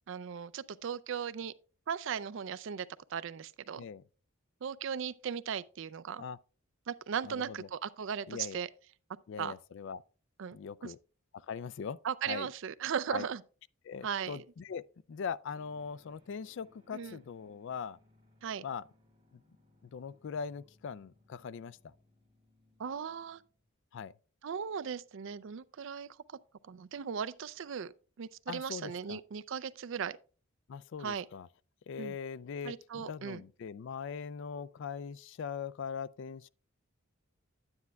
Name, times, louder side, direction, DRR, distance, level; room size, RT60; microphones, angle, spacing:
voice 1, 0.1-1.5 1.9-3.8 4.6-6.2 6.9-8.7 9.4-9.5 10.4-10.6 10.8-10.9 12.0-13.4 14.0-14.5 16.9-17.2 18.4-18.6 22.8-23.4 24.4-26.4 26.7-27.9 28.2-30.2 31.0-31.3 32.0-32.2 32.6-33.4, right 7 dB, 60° right, 0.4 m, -37 dB
voice 2, 7.3-7.7 8.3-8.6 9.3-10.0 10.5-11.0 11.3-12.0 12.3-12.5 13.1-13.2 13.9-14.8 15.1-18.0 18.6-18.8 19.9-21.8 23.9-24.1 28.5-29.2 30.7-31.5 31.9-36.5, left 6 dB, 55° left, 0.3 m, -41 dB
sound 1, 15.5-23.7, left 2 dB, 25° right, 2.5 m, -67 dB
9.7 x 9.3 x 2.2 m
head